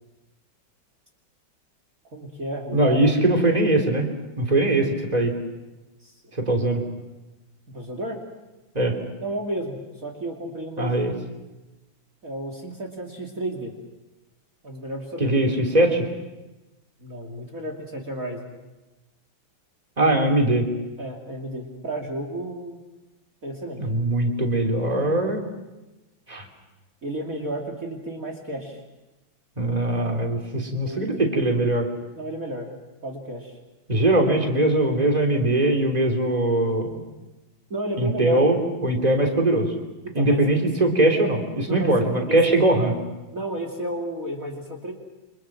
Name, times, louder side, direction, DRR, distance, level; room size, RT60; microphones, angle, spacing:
voice 1, 2.1-3.0 3.3-3.4 6.0-6.6 7.7-8.2 9.2-11.0 12.2-13.7 14.6-15.3 17.0-18.5 20.0-20.2 21.0-22.8 23.4-23.8 27.0-28.8 30.8-31.4 32.1-33.6 37.7-38.4 40.0-40.4 41.7-42.4 43.3-44.9, right 1 dB, 45° right, 2 dB, 3.1 m, -32 dB
voice 2, 2.7-4.1 4.4-5.3 6.4-6.8 8.7-9.0 10.8-11.1 15.2-16.1 20.0-20.7 23.8-25.4 26.3-26.4 29.6-31.9 33.9-37.0 38.0-39.7 40.1-42.9, right 1 dB, 20° right, 3 dB, 3.5 m, -21 dB
29.0 x 26.0 x 6.2 m, 1.1 s
omnidirectional pair, 2.2 m